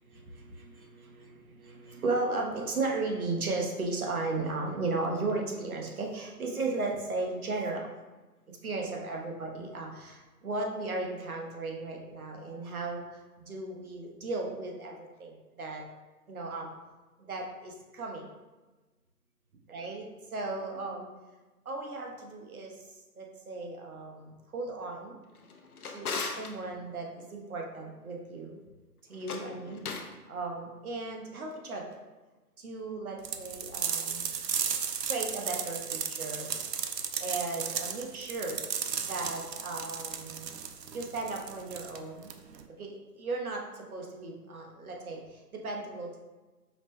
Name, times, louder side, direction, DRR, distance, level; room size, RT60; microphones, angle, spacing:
voice 1, 0.1-7.9 8.5-15.8 16.3-16.7 17.2-18.3 19.7-21.1 21.6-22.8 23.2-25.2 25.9-28.6 29.1-31.9 32.6-34.3 35.0-36.5 37.2-38.6 39.0-40.5 40.9-42.3 42.8-46.2, right 3 dB, 60° right, 1 dB, 0.9 m, -36 dB
Drawer open or close, 25.3-26.5 29.1-30.2, left 4 dB, 65° left, 0.6 m, -38 dB
sound 1, 33.3-42.6, right 7 dB, 90° right, 0.6 m, -35 dB
4.9 x 2.1 x 3.5 m, 1.2 s
figure-of-eight pair, 160°, 48 cm